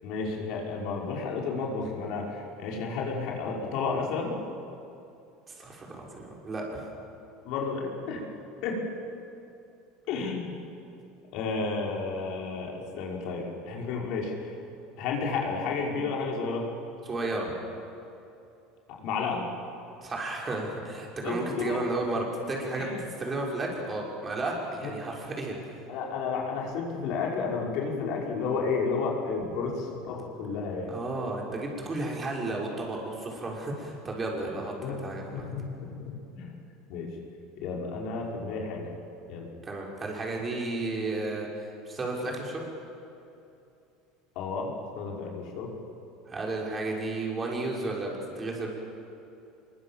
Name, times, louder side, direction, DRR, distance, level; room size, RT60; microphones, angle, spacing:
voice 1, 0.0-4.4 7.4-8.2 8.6-8.9 10.1-10.5 11.3-14.3 15.0-16.7 19.0-19.4 21.2-21.8 22.7-23.0 24.8-24.9 25.9-30.9 34.8-35.1 35.3-36.5 36.9-37.2 37.6-38.9 39.3-39.5 44.4-45.7, left 4 dB, 60° left, -1 dB, 5.5 m, -32 dB
voice 2, 5.5-6.9 17.0-17.5 20.0-25.8 30.9-34.7 35.0-35.5 39.6-42.7 46.3-48.7, right 2 dB, 25° right, -1 dB, 6.0 m, -33 dB
25.0 x 22.5 x 7.5 m, 2.7 s
supercardioid pair, 115°, 0 cm